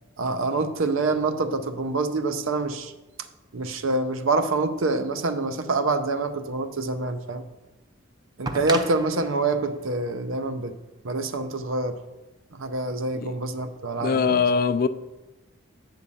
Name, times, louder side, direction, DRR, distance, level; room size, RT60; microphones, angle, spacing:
voice 1, 0.2-2.9 3.5-7.4 8.4-10.7 11.0-12.0 12.5-14.4, right 3 dB, 80° right, 9 dB, 0.7 m, -26 dB
sound 1, 8.4-11.3 12.5-12.6, right 3 dB, 20° right, 0.5 m, -36 dB
voice 2, 14.0-14.9, left 5 dB, 45° left, 13 dB, 0.3 m, -22 dB
8.3 x 3.7 x 6.9 m, 1.0 s
head